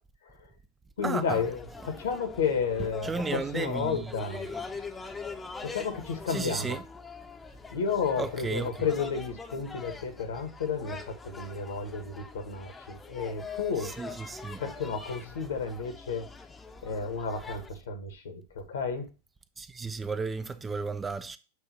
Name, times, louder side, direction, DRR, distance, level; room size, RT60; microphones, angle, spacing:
voice 1, 0.2-0.5 1.0-4.5 5.6-6.8 7.7-13.9 14.6-16.3 16.8-19.1, left 5 dB, 65° left, 1.3 m, -32 dB
voice 2, 1.0-1.4 3.0-4.1 4.5-4.6 6.3-6.8 8.2-8.7 13.8-14.6 19.6-21.4, right 4 dB, 15° right, 0.4 m, -33 dB
sound 1, 1.2-17.7, left 4 dB, 15° left, 0.8 m, -43 dB
8.2 x 2.7 x 5.6 m
figure-of-eight pair, 90°, 0 cm